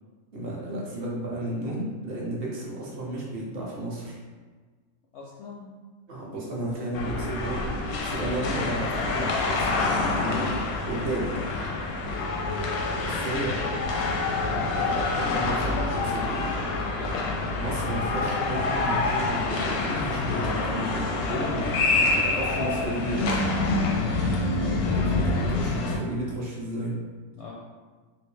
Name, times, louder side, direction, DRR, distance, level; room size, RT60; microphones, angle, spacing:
voice 1, 0.3-4.2 6.1-7.6 7.9-11.4 13.0-13.6 14.5-16.4 17.5-23.4 24.9-27.0, right 1 dB, 50° right, -4 dB, 0.8 m, -33 dB
voice 2, 5.1-5.7 12.7-13.2 13.6-14.6 15.9-16.1 16.9-17.3 24.0-24.5 27.4-27.5, left 3 dB, 65° left, -4 dB, 0.7 m, -43 dB
sound 1, 6.9-26.0, left 3 dB, 85° left, 1.1 m, -27 dB
3.3 x 2.6 x 3.1 m, 1.4 s
omnidirectional pair, 1.5 m